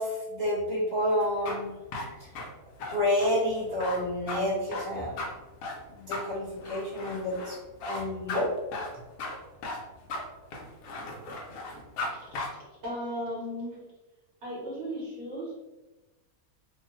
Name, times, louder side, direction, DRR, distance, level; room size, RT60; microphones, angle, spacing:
voice 1, 0.0-2.1 2.9-5.1 5.9-7.5 7.8-8.5, left 1 dB, 20° left, -10 dB, 0.9 m, -29 dB
sound 1, 1.2-12.1 12.3-12.5, left 2 dB, 70° left, 1.0 m, -36 dB
voice 2, 12.1-12.5 12.8-13.8 14.4-15.5, equal, 50° right, -7 dB, 1.1 m, -36 dB
2.9 x 2.1 x 2.9 m, 1.1 s
omnidirectional pair, 1.6 m